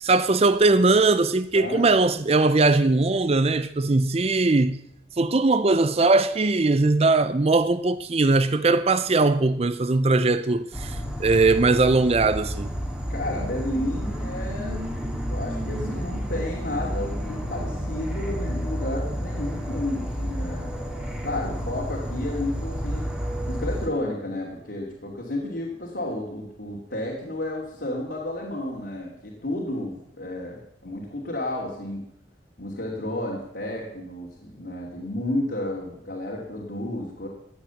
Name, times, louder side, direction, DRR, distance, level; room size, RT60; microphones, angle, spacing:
voice 1, 0.0-4.8 5.2-12.7, right 3 dB, 35° right, 0.5 m, -20 dB
voice 2, 1.5-1.9 13.1-20.7 21.2-23.0 23.5-32.0 32.6-37.3, left 1 dB, 60° left, 2.9 m, -32 dB
Insect / Frog, 10.7-23.9, equal, 5° right, 2.1 m, -30 dB
15.0 x 9.1 x 7.2 m
head